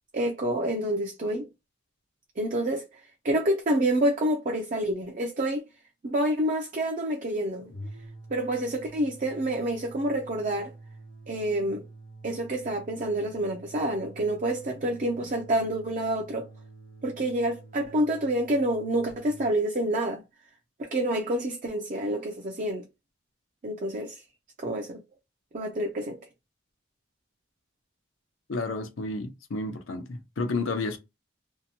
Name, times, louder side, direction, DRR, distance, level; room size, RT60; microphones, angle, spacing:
voice 1, 0.1-1.5 2.4-5.6 6.0-7.7 8.3-10.7 11.3-11.9 12.2-16.5 17.0-20.2 20.8-22.9 23.6-24.2 24.6-25.0 25.5-26.2, right 1 dB, 40° right, 0.4 m, -28 dB
sound 1, 7.6-19.5, right 2 dB, 65° left, 1.1 m, -47 dB
voice 2, 28.5-31.0, left 3 dB, 90° left, 0.6 m, -31 dB
2.7 x 2.2 x 2.7 m
head